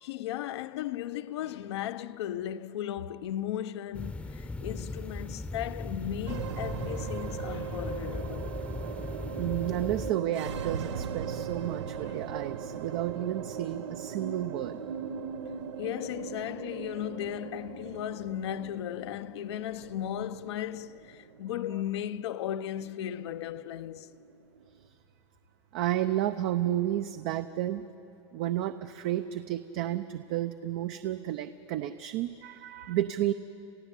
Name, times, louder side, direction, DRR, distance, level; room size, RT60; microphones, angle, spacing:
voice 1, 0.0-8.5 11.6-11.8 15.8-24.1, left 11 dB, 75° left, 0.7 m, -36 dB
sound 1, 3.9-10.1, left 3 dB, 10° left, 0.8 m, -38 dB
sound 2, 6.3-24.8, right 7 dB, 90° right, 0.9 m, -39 dB
voice 2, 9.4-14.8 21.7-21.8 25.7-27.9 28.3-33.3, right 13 dB, 55° right, 0.7 m, -31 dB
28.5 x 15.5 x 8.3 m
supercardioid pair, 125°, 14 cm